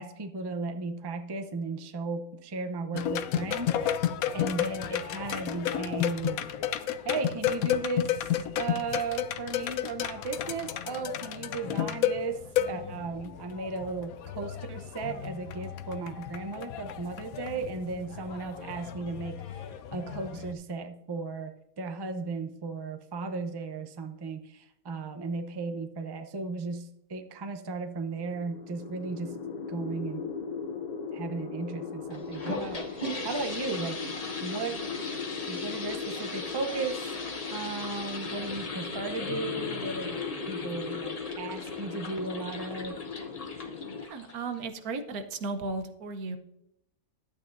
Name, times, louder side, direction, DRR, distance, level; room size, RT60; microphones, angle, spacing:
voice 1, 0.0-4.1 4.3-6.4 7.0-19.7 19.9-29.4 29.7-30.3 31.1-34.0 34.4-34.9 35.5-37.2 37.5-40.2 40.5-43.0, right 3 dB, 30° right, 7 dB, 0.5 m, -35 dB
sound 1, 2.9-20.5, left 10 dB, 75° left, 1.1 m, -32 dB
sound 2, 28.1-44.1, left 5 dB, 60° left, 0.4 m, -38 dB
sound 3, 32.1-44.6, left 2 dB, 30° left, 0.9 m, -39 dB
voice 2, 44.0-46.4, right 3 dB, 90° right, 8 dB, 1.4 m, -35 dB
12.0 x 8.3 x 2.6 m, 0.85 s
omnidirectional pair, 1.5 m